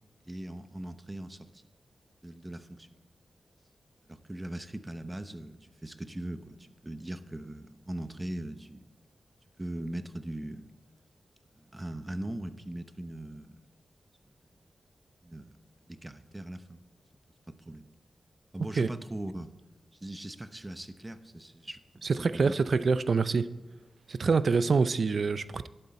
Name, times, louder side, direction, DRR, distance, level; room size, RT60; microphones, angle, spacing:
voice 1, 0.2-1.6 2.2-2.9 4.1-8.9 9.6-10.7 11.5-13.6 15.2-15.5 15.9-16.8 17.5-17.9 18.5-19.5 19.9-22.5 24.2-24.3, right 1 dB, 20° right, 0.8 m, -40 dB
voice 2, 22.0-23.5 24.1-25.7, right 4 dB, 65° right, 0.5 m, -26 dB
11.5 x 11.0 x 4.2 m
cardioid pair, 75°, 0 cm